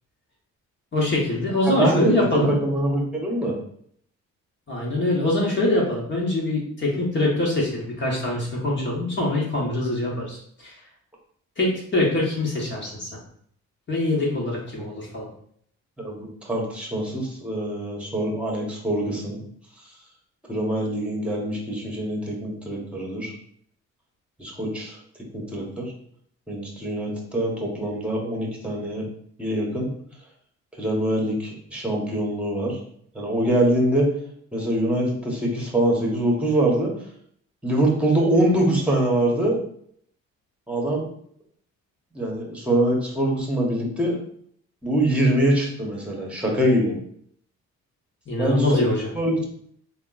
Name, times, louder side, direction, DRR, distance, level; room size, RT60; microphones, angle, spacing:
voice 1, 0.9-2.5 4.7-10.8 11.6-13.2 13.9-15.3 48.3-49.1, left 2 dB, 40° left, -3 dB, 1.3 m, -24 dB
voice 2, 1.7-3.6 14.7-14.9 16.0-19.4 20.5-23.3 24.4-25.0 25.3-25.9 26.5-29.0 29.4-29.9 30.8-32.8 33.1-34.1 34.5-36.9 37.6-39.6 40.7-41.1 42.1-44.2 44.8-46.9 48.4-48.7 49.1-49.4, right 1 dB, 5° right, -1 dB, 1.3 m, -24 dB
3.6 x 2.3 x 4.0 m, 0.64 s
cardioid pair, 90°, 30 cm